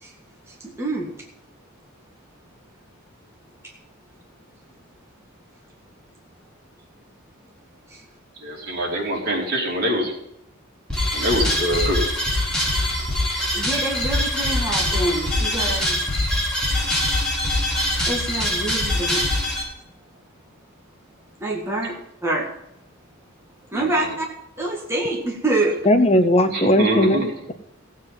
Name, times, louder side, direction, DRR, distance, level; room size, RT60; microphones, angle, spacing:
voice 1, 0.5-1.1 7.9-8.0 13.5-16.0 18.1-19.3 21.4-22.5 23.7-24.3 24.6-25.8, right 2 dB, 15° right, -2 dB, 1.8 m, -26 dB
voice 2, 8.4-10.1 11.1-12.0 23.7-24.1 26.5-27.2, equal, 50° right, -3 dB, 4.4 m, -24 dB
sound 1, 10.9-19.6, left 1 dB, 5° left, 5.3 m, -23 dB
voice 3, 25.8-27.5, left 1 dB, 30° left, 8 dB, 0.8 m, -18 dB
16.5 x 8.0 x 5.8 m, 0.84 s
head